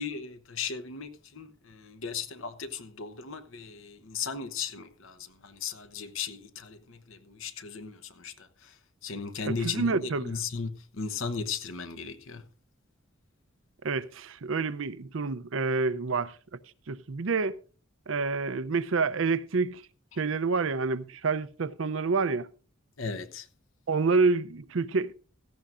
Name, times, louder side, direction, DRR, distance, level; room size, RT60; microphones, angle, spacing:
voice 1, 0.0-8.7 9.0-12.5 20.1-20.2 23.0-23.5, left 5 dB, 70° left, 1.0 m, -36 dB
voice 2, 9.4-10.3 13.8-16.3 16.9-17.5 18.1-19.8 20.2-22.5 23.9-25.1, right 4 dB, 65° right, 0.6 m, -28 dB
17.0 x 14.0 x 2.5 m
head